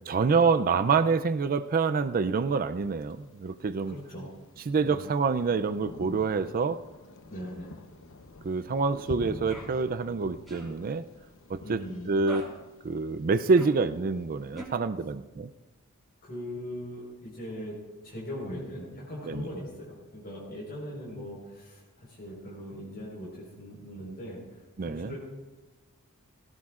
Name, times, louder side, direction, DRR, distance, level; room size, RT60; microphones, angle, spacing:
voice 1, 0.1-4.0 4.7-6.8 8.4-11.0 11.5-11.8 12.1-12.4 12.8-15.5 19.2-19.5 24.8-25.2, right 4 dB, 40° right, 11 dB, 0.4 m, -26 dB
Thunder, 2.8-14.7, left 2 dB, 65° left, 0.9 m, -48 dB
voice 2, 3.9-4.3 4.8-5.0 7.2-7.7 11.6-12.1 16.2-17.8 18.0-25.2, equal, 45° left, -4 dB, 4.3 m, -40 dB
sound 1, 9.5-9.7 10.5-10.7 12.2-12.5 13.5-13.8 14.5-14.6, equal, ahead, 4.2 m, -40 dB
17.5 x 17.0 x 2.4 m, 1.1 s
head